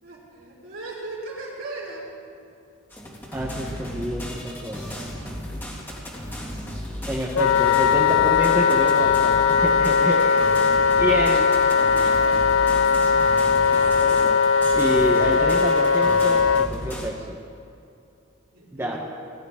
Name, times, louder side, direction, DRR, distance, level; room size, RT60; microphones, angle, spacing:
voice 1, 0.0-2.2 10.0-14.1 18.5-19.0, right 2 dB, 65° right, -5 dB, 3.9 m, -39 dB
sound 1, 2.9-17.1, equal, 10° left, 2.0 m, -35 dB
voice 2, 3.3-5.0 7.1-10.2 11.0-11.4 13.8-14.4 14.7-17.4 18.7-19.0, right 1 dB, 10° right, -2 dB, 0.9 m, -28 dB
Wind instrument woodwind instrument, 7.4-16.7, left 6 dB, 65° left, 0.3 m, -19 dB
20.0 x 11.0 x 3.6 m, 2.5 s
head